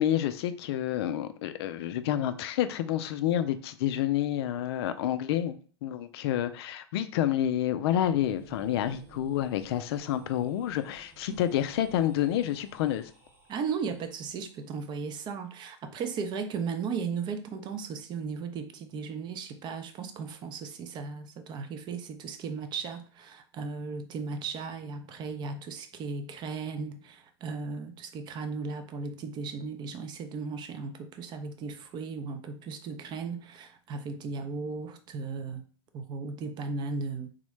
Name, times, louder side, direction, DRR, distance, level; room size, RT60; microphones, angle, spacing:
voice 1, 0.0-13.1, left 11 dB, 65° left, 0.4 m, -29 dB
sound 1, 7.7-14.5, right 5 dB, 15° right, 0.9 m, -55 dB
voice 2, 13.5-35.6 35.9-37.3, right 5 dB, 30° right, 0.5 m, -36 dB
3.6 x 2.1 x 3.1 m
hypercardioid pair, 120°, 14 cm